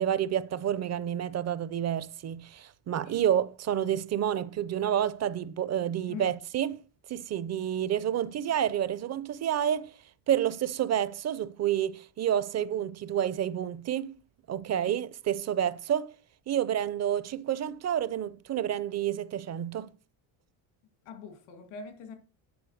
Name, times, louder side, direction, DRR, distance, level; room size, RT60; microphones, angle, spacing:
voice 1, 0.0-6.8 7.1-9.9 10.3-14.2 14.5-16.1 16.5-19.9, right 10 dB, 35° right, 0.5 m, -29 dB
voice 2, 21.0-22.1, left 5 dB, 80° left, 2.2 m, -43 dB
10.5 x 4.6 x 6.4 m
cardioid pair, 125°, 47 cm